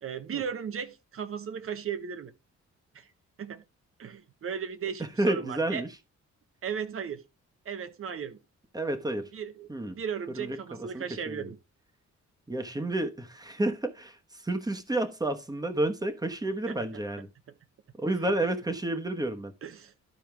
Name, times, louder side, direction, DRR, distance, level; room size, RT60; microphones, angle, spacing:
voice 1, 0.0-2.3 2.9-3.1 3.4-3.6 4.0-5.8 6.6-7.2 7.6-8.4 9.3-11.6 16.7-16.8 19.6-19.9, right 7 dB, 50° right, 0.9 m, -36 dB
voice 2, 5.2-5.9 8.7-9.3 9.7-10.0 10.3-11.5 12.5-17.3 18.0-19.5, right 1 dB, 15° right, 1.1 m, -30 dB
12.5 x 4.6 x 3.4 m
cardioid pair, 100°, 29 cm